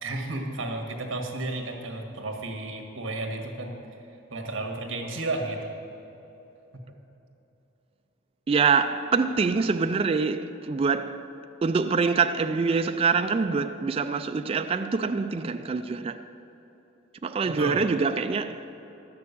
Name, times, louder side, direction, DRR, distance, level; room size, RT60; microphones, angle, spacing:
voice 1, 0.0-3.8 4.3-5.6 17.6-17.8, right 2 dB, 65° right, 1.6 m, -32 dB
voice 2, 8.5-11.3 11.6-16.2 17.2-18.7, right 5 dB, 30° right, 0.3 m, -25 dB
12.0 x 6.8 x 8.3 m
head